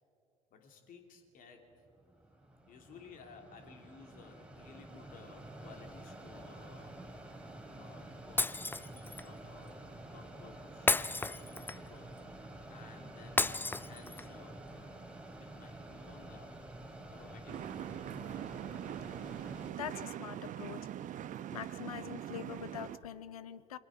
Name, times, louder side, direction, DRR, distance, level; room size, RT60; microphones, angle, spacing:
voice 1, 0.5-1.7 2.7-7.0 7.6-8.7 9.2-9.8 10.1-11.2 11.8-14.8 15.3-16.6 17.1-17.6 17.8-17.9, left 5 dB, 50° left, 3 dB, 3.2 m, -56 dB
Mechanisms, 1.7-19.7, right 1 dB, 5° right, 3.0 m, -49 dB
Shatter, 8.4-9.3 10.9-12.0 13.4-14.4, left 3 dB, 10° left, 0.6 m, -32 dB
sound 1, 17.5-23.0, right 11 dB, 45° right, 0.9 m, -42 dB
voice 2, 19.8-20.8 21.5-23.8, left 10 dB, 80° left, 17 dB, 0.7 m, -44 dB
28.5 x 23.5 x 4.9 m, 2.6 s
hypercardioid pair, 60°, 18 cm